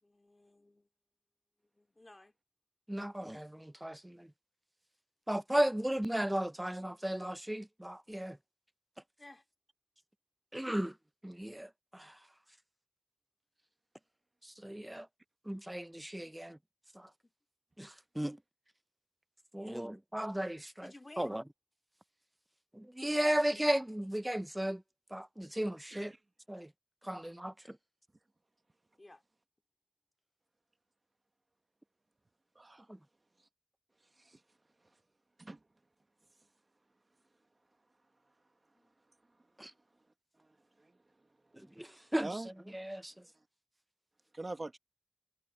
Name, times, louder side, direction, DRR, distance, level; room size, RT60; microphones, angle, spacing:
voice 1, 0.0-0.9 1.7-2.3 9.2-9.4 16.2-16.5 19.5-19.8 20.8-21.4 29.0-29.2 38.7-38.9, left 2 dB, 40° left, 2.6 m, -56 dB
voice 2, 2.9-4.3 5.3-8.4 10.5-10.9 11.2-12.2 14.4-15.1 15.5-16.6 16.9-17.1 17.8-18.4 19.5-20.9 21.2-21.4 22.7-24.8 25.1-26.1 26.5-26.7 27.0-27.8 32.9-33.0 39.6-39.7 41.5-42.3 42.7-43.1, right 1 dB, 15° right, 0.5 m, -35 dB
voice 3, 32.6-32.9 34.2-34.4 35.4-35.6 40.4-40.5 40.8-40.9 42.2-42.5 44.3-44.8, right 2 dB, 50° right, 1.1 m, -43 dB
wide cardioid pair, 60°, 0 cm